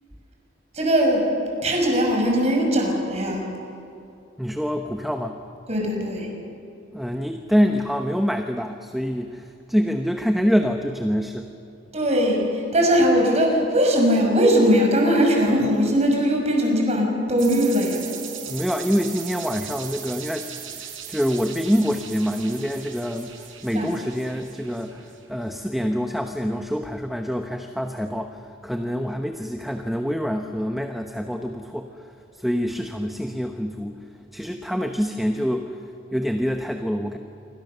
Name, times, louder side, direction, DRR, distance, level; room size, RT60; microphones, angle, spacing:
voice 1, 0.7-1.3 1.6-3.5 5.7-6.3 11.9-18.0 23.7-23.8, equal, 35° right, 1 dB, 5.7 m, -20 dB
voice 2, 4.4-5.4 6.9-11.5 18.4-20.5 20.8-23.3 23.6-25.0 25.3-31.9 32.3-34.0 34.3-35.7 36.1-37.2, equal, ahead, 5 dB, 0.9 m, -25 dB
sound 1, 17.4-25.2, right 9 dB, 85° right, 4.6 m, -38 dB
27.5 x 24.5 x 6.8 m, 2.7 s
head